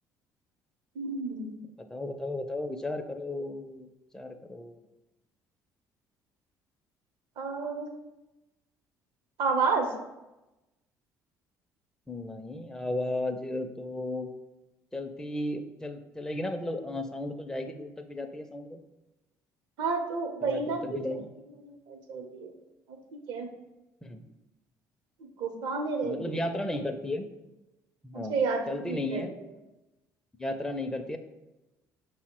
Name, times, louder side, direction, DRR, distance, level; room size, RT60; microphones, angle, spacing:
voice 1, 0.9-1.6 7.4-7.9 9.4-9.9 19.8-20.8 21.6-22.5 22.9-23.5 25.4-26.4 28.1-29.2, right 4 dB, 70° right, 5 dB, 0.7 m, -31 dB
voice 2, 1.9-3.9 4.1-4.8 12.1-14.3 14.9-18.8 20.4-21.3 24.0-24.3 26.0-27.3 28.0-28.4 28.7-29.3 30.4-31.2, left 1 dB, 5° left, 5 dB, 0.4 m, -34 dB
5.6 x 2.1 x 4.4 m, 0.99 s
hypercardioid pair, 60°, 9 cm